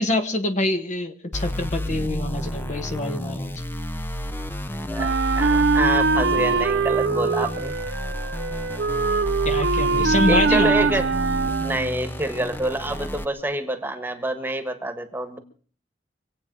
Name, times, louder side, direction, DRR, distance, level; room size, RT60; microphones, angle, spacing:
voice 1, 0.0-3.5 9.4-10.9, left 1 dB, 45° left, 7 dB, 1.5 m, -26 dB
sound 1, 1.3-13.2, left 1 dB, 10° left, 0.8 m, -30 dB
voice 2, 4.9-7.8 10.3-11.1 11.6-15.4, right 1 dB, 10° right, 8 dB, 1.6 m, -27 dB
Wind instrument woodwind instrument, 5.0-12.0, right 4 dB, 80° right, 0.8 m, -22 dB
25.5 x 8.6 x 6.1 m, 0.43 s
head